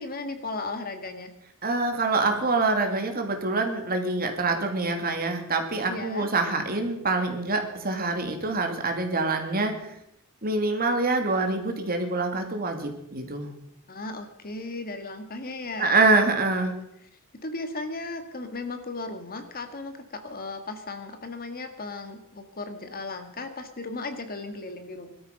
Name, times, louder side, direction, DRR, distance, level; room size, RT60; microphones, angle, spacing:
voice 1, 0.0-1.3 5.9-6.3 13.9-16.3 16.6-16.8 17.4-25.1, left 3 dB, 45° left, 7 dB, 1.9 m, -36 dB
voice 2, 1.6-9.8 10.4-13.5 15.8-16.7, right 3 dB, 45° right, 4 dB, 2.6 m, -25 dB
20.5 x 13.0 x 5.4 m, 0.79 s
head